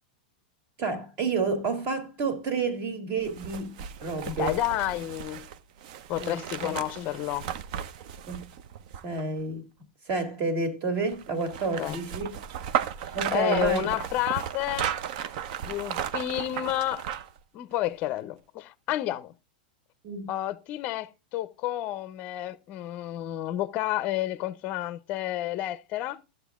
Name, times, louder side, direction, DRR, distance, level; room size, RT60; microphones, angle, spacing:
voice 1, 0.8-4.5 6.2-6.8 8.3-8.5 9.0-9.7 10.1-12.3 13.1-13.9 20.0-20.3, right 4 dB, 40° right, 2.0 m, -30 dB
sound 1, 3.2-9.4 11.1-17.4 17.8-17.9, right 9 dB, 55° right, 0.5 m, -35 dB
voice 2, 4.2-5.5 6.1-7.5 11.8-12.0 13.3-14.9 15.6-17.0 17.5-19.3 20.3-26.2, left 14 dB, 35° left, 0.5 m, -30 dB
12.0 x 7.7 x 2.3 m
supercardioid pair, 135°, 5 cm